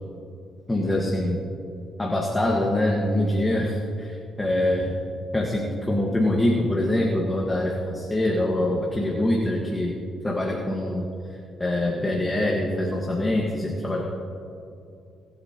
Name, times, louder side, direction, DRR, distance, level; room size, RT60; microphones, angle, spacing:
voice 1, 0.7-1.4 2.0-4.9 5.3-9.9 10.2-14.0, left 1 dB, 15° left, -1 dB, 1.6 m, -24 dB
26.0 x 8.8 x 3.0 m, 2.6 s
cardioid pair, 90°, 0 cm